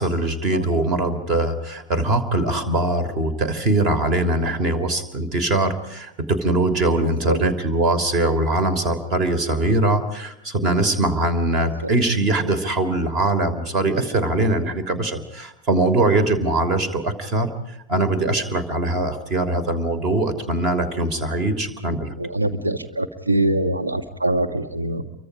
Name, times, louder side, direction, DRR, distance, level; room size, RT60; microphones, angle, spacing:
voice 1, 0.0-22.1, right 2 dB, 35° right, 12 dB, 3.2 m, -22 dB
voice 2, 22.2-25.0, right 1 dB, 80° right, 5 dB, 1.9 m, -23 dB
28.5 x 24.0 x 4.9 m, 0.84 s
figure-of-eight pair, 90°, 0 cm